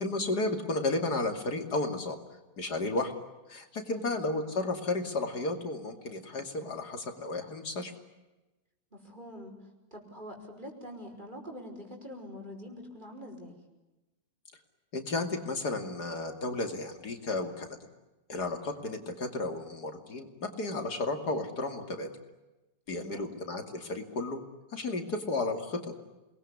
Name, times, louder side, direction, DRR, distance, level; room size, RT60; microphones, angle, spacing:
voice 1, 0.0-2.2 2.6-3.1 3.5-7.9 14.9-17.8 18.3-22.1 22.9-24.4 24.7-25.9, left 2 dB, 70° left, 6 dB, 3.2 m, -33 dB
voice 2, 8.9-13.6 22.9-23.3, equal, 25° right, 3 dB, 5.6 m, -45 dB
29.0 x 21.0 x 9.8 m, 1.1 s
omnidirectional pair, 1.8 m